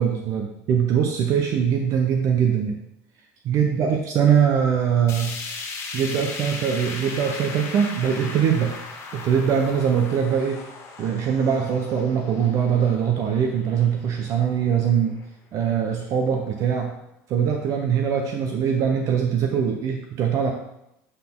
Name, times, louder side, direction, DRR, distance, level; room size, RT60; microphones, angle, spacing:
voice 1, 0.0-2.8 3.4-5.4 5.9-8.8 9.1-10.6 11.0-15.2 15.5-16.9 17.3-20.5, right 7 dB, 55° right, 3 dB, 0.8 m, -22 dB
sound 1, 5.1-15.2 15.6-15.7 16.1-16.2 17.1-17.2, left 4 dB, 50° left, 1.6 m, -37 dB
8.2 x 4.1 x 3.7 m, 0.79 s
supercardioid pair, 105°, 6 cm